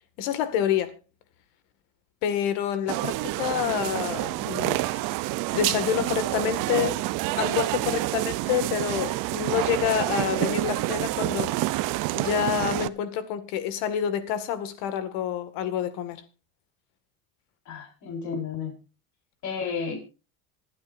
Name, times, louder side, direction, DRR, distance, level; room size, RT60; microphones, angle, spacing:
voice 1, 0.2-1.0 2.2-5.0 5.5-7.0 7.4-11.8 12.1-16.2, left 9 dB, 70° left, 2.0 m, -28 dB
sound 1, 2.9-12.9, right 18 dB, 50° right, 0.6 m, -28 dB
voice 2, 17.6-18.7 19.4-20.0, left 5 dB, 45° left, 4.6 m, -32 dB
26.0 x 8.8 x 2.6 m
supercardioid pair, 130°, 41 cm